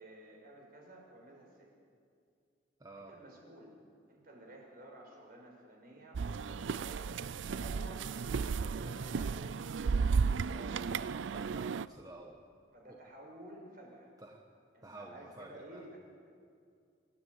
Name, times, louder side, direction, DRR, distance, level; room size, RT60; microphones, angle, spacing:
voice 1, 0.0-1.7 3.1-3.7 4.1-9.7 12.7-14.1 14.7-16.0, right 1 dB, 55° right, 1 dB, 5.6 m, -52 dB
voice 2, 2.8-3.1 10.3-12.4 12.9-13.0 14.2-14.4 14.8-15.8, right 2 dB, 20° right, 1 dB, 1.4 m, -51 dB
sound 1, 6.1-11.9, right 5 dB, 85° right, 0.4 m, -34 dB
25.5 x 13.5 x 9.5 m, 2.4 s
head